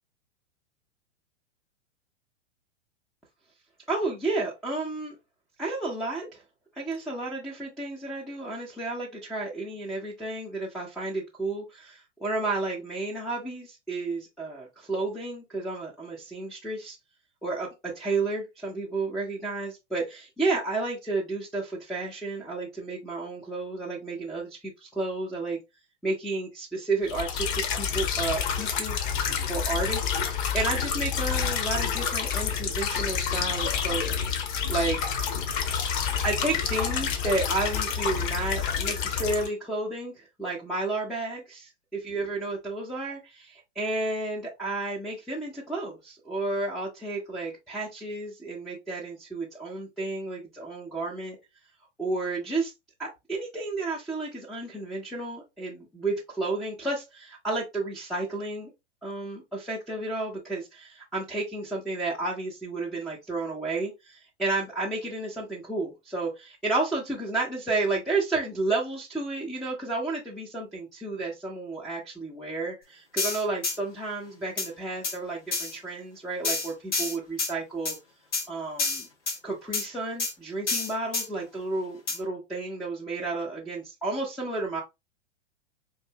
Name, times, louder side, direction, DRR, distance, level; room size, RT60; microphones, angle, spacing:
voice 1, 3.9-5.2 5.6-6.4 6.8-17.0 17.4-25.6 26.0-29.1 29.4-34.2 34.7-35.0 35.5-51.4 52.0-52.7 53.0-58.7 59.0-78.0 78.5-79.1 79.4-84.8, right 3 dB, ahead, 0.3 m, -32 dB
sound 1, 27.1-39.5, left 7 dB, 45° left, 0.9 m, -28 dB
sound 2, 73.2-73.8 74.6-74.7 75.0-75.2 75.5-75.7 76.4-77.5 77.8-78.0 78.3-78.4 78.8-79.4 79.7-79.9 80.2-80.3 80.7-81.3 82.1-82.2, left 3 dB, 70° left, 2.5 m, -28 dB
4.5 x 2.5 x 2.6 m
figure-of-eight pair, 105°, 36 cm